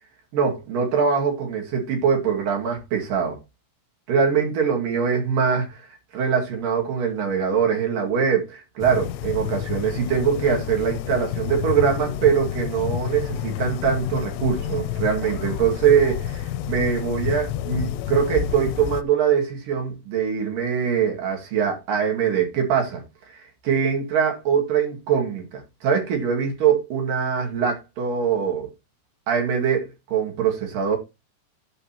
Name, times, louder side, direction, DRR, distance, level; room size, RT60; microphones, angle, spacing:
voice 1, 0.3-3.4 4.1-5.8 6.1-23.0 23.6-28.7 29.3-31.0, right 7 dB, 60° right, 3.6 m, -23 dB
sound 1, 8.8-19.0, left 11 dB, 85° left, 2.7 m, -29 dB
15.0 x 5.4 x 2.9 m
omnidirectional pair, 4.8 m